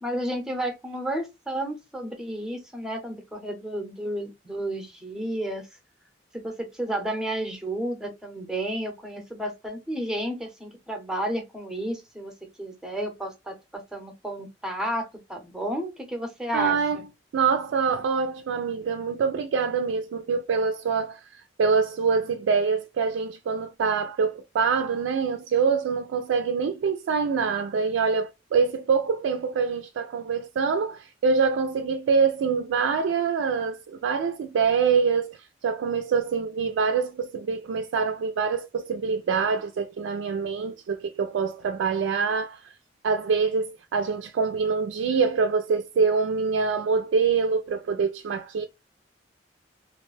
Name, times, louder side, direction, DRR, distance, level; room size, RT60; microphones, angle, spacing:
voice 1, 0.0-5.7 6.3-17.0, right 1 dB, 5° right, 0.6 m, -32 dB
voice 2, 16.5-17.0 17.3-21.2 21.6-35.4 35.6-42.6 43.0-48.6, right 5 dB, 85° right, 0.3 m, -25 dB
2.5 x 2.1 x 3.1 m
head